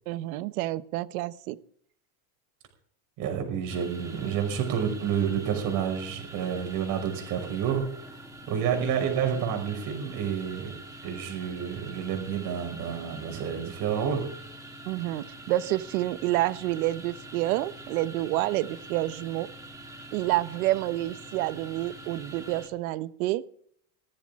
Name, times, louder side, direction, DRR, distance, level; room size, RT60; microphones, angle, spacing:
voice 1, 0.1-1.6 14.9-19.5 20.1-23.4, right 16 dB, 75° right, 14 dB, 1.1 m, -28 dB
voice 2, 3.2-7.8 8.1-8.2 8.5-10.7 11.0-14.2, right 8 dB, 50° right, 4 dB, 5.7 m, -29 dB
sound 1, 3.7-22.7, right 1 dB, 5° right, 1.9 m, -45 dB
17.0 x 14.0 x 3.7 m, 0.64 s
cardioid pair, 160°, 44 cm